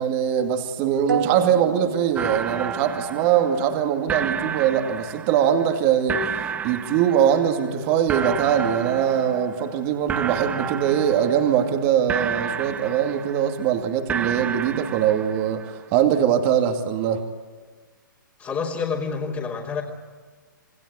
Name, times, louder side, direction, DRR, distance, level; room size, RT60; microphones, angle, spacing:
voice 1, 0.0-6.3 6.6-17.3, right 9 dB, 30° right, 2.4 m, -22 dB
sound 1, 1.1-3.1, right 7 dB, 75° right, 3.0 m, -30 dB
sound 2, 2.1-3.8 4.1-5.7 6.1-7.7 8.1-9.8 10.1-11.8 12.1-13.7 14.1-15.7, right 7 dB, 15° right, 1.1 m, -31 dB
voice 2, 18.4-19.8, left 5 dB, 20° left, 3.3 m, -28 dB
27.5 x 21.5 x 9.6 m
hypercardioid pair, 140°, 11 cm